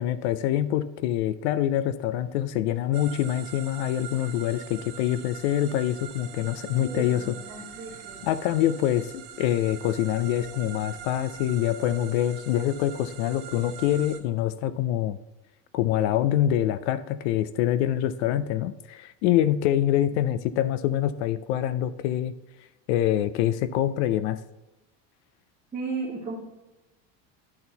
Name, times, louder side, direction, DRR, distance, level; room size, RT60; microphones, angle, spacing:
voice 1, 0.0-7.3 8.2-15.2 15.7-22.3 22.9-24.4, left 12 dB, 65° left, 14 dB, 0.5 m, -25 dB
sound 1, 2.9-14.2, right 9 dB, 85° right, 1.4 m, -43 dB
voice 2, 6.6-8.3 25.7-26.3, right 4 dB, 15° right, -8 dB, 1.4 m, -35 dB
10.5 x 4.4 x 4.0 m, 1.0 s
cardioid pair, 180°, 36 cm